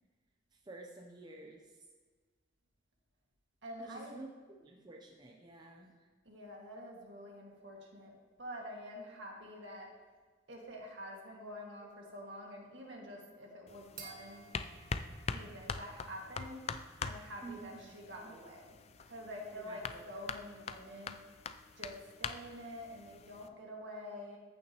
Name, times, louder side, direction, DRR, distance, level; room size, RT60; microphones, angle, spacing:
voice 1, 0.5-1.8 3.8-4.3 4.6-6.1 17.4-18.3 19.5-20.0, right 3 dB, 20° right, 0 dB, 0.6 m, -51 dB
voice 2, 3.6-4.2 6.3-8.1 8.4-9.9 10.5-14.5 15.3-16.6 17.0-18.8 19.0-21.2 21.8-24.4, equal, 65° right, -1 dB, 1.9 m, -47 dB
sound 1, 11.8-16.6, right 5 dB, 45° right, 1.4 m, -57 dB
sound 2, 13.7-23.5, left 5 dB, 30° left, 0.3 m, -44 dB
14.5 x 6.3 x 2.9 m, 1.4 s
head